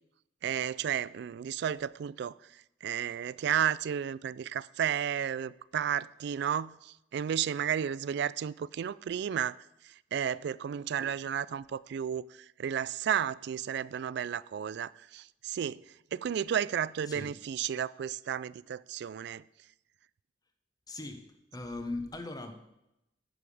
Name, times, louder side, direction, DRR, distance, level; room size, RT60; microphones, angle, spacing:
voice 1, 0.4-2.3 2.8-9.5 10.1-12.3 12.6-15.8 16.1-19.4, right 8 dB, 65° right, 20 dB, 0.3 m, -32 dB
voice 2, 20.9-22.7, left 2 dB, 20° left, 7 dB, 1.0 m, -39 dB
10.5 x 7.2 x 4.9 m, 0.86 s
head